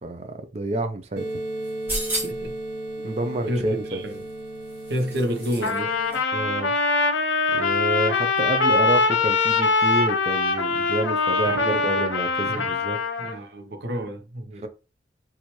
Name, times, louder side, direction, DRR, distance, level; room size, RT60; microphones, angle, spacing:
voice 1, 0.0-1.3 3.0-4.0 6.3-6.7 7.5-13.0 13.2-13.5 14.6-14.7, right 2 dB, 35° right, 0.5 m, -28 dB
sound 1, 1.2-6.2, right 1 dB, 80° right, 1.1 m, -34 dB
sound 2, 1.6-2.5 4.0-5.8 6.1-6.2, right 1 dB, 10° right, 1.3 m, -33 dB
voice 2, 2.2-2.6 3.5-4.2 4.9-5.9 11.4-11.9 12.4-12.7 13.2-14.7, equal, 60° right, 0.8 m, -30 dB
Trumpet, 5.6-13.4, left 4 dB, 80° left, 0.8 m, -23 dB
4.3 x 2.5 x 3.1 m
head